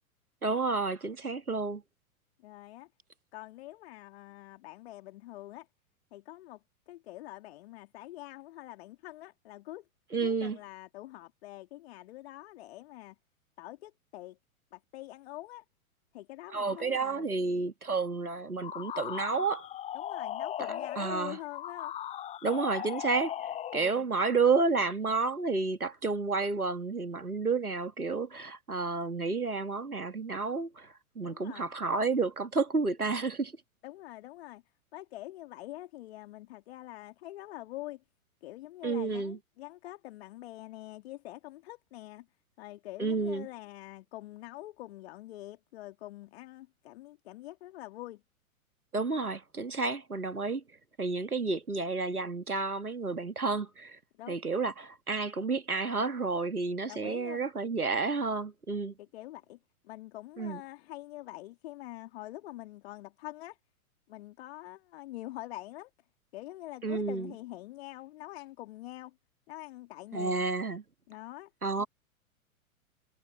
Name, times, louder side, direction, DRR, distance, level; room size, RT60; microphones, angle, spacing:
voice 1, 0.4-1.8 10.1-10.6 16.5-19.7 21.0-21.4 22.4-33.5 38.8-39.4 43.0-43.5 48.9-50.6 51.0-54.0 54.3-58.9 60.4-60.6 66.8-67.3 70.1-70.8 71.6-71.9, right 4 dB, 85° right, 2.1 m, -31 dB
voice 2, 2.4-2.9 3.3-5.7 6.1-9.8 10.2-13.2 13.6-14.4 14.7-15.6 16.1-17.3 19.9-21.9 23.7-24.1 31.2-31.7 33.8-34.6 34.9-38.0 38.4-42.3 42.6-48.2 54.2-54.4 56.9-57.4 59.0-59.6 59.8-63.6 64.1-65.9 66.3-69.1 69.5-70.4 71.1-71.5 71.8-71.9, left 16 dB, 45° left, 2.3 m, -45 dB
sound 1, 18.6-24.0, left 11 dB, 15° left, 1.0 m, -38 dB
figure-of-eight pair, 105°, 43 cm